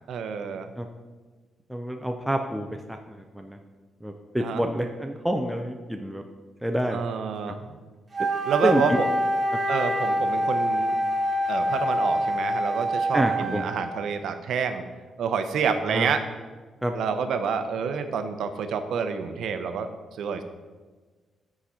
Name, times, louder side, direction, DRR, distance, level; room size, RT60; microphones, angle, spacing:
voice 1, 0.1-0.7 4.4-4.6 6.9-7.6 8.5-9.1 9.7-11.0 11.5-14.8 15.2-16.2 16.9-19.9 20.2-20.4, right 6 dB, 70° right, 8 dB, 0.6 m, -28 dB
voice 2, 1.7-3.6 4.0-6.2 6.6-7.0 8.6-9.0 13.1-13.6 15.9-16.1 16.8-16.9, equal, ahead, 3 dB, 0.3 m, -28 dB
Wind instrument woodwind instrument, 8.1-14.0, equal, 25° right, 0.8 m, -26 dB
8.3 x 4.9 x 4.2 m, 1.3 s
wide cardioid pair, 180°, 0 cm